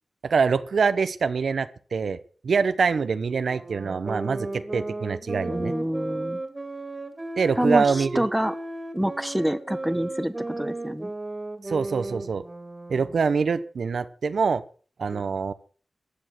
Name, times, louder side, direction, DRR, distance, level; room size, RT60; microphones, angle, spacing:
voice 1, 0.2-2.2 2.4-5.7 7.4-8.2 11.7-12.4 12.9-14.6 15.0-15.5, right 5 dB, 80° right, 13 dB, 0.9 m, -24 dB
sound 1, 3.5-13.5, right 2 dB, 25° right, 2.2 m, -35 dB
voice 2, 5.5-6.4 7.6-7.8 8.1-8.5 8.9-11.1 15.1-15.2, equal, 5° right, 12 dB, 1.2 m, -27 dB
14.5 x 10.0 x 6.1 m, 0.42 s
wide cardioid pair, 80°, 0 cm